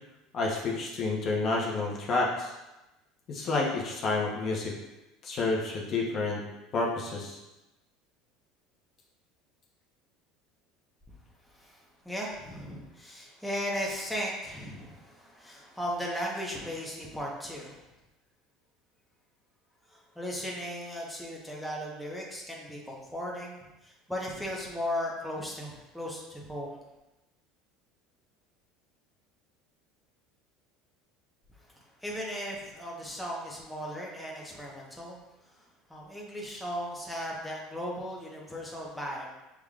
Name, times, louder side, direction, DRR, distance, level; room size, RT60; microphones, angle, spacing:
voice 1, 0.3-2.5 3.3-4.8 5.2-6.4 6.7-7.4, left 3 dB, 45° left, -2 dB, 0.9 m, -29 dB
voice 2, 11.4-17.8 19.9-26.8 31.6-39.3, equal, ahead, -3 dB, 1.1 m, -37 dB
6.1 x 3.5 x 2.4 m, 1.0 s
supercardioid pair, 105°, 0 cm